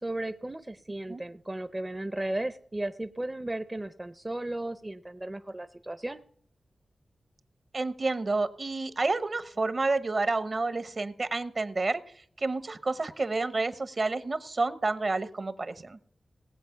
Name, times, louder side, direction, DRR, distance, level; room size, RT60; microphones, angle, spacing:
voice 1, 0.0-6.2, right 1 dB, 20° right, 10 dB, 0.6 m, -35 dB
voice 2, 7.7-12.0 12.4-16.0, right 3 dB, 50° right, 13 dB, 0.9 m, -29 dB
18.5 x 7.6 x 5.7 m, 0.63 s
wide cardioid pair, 75°, 0 cm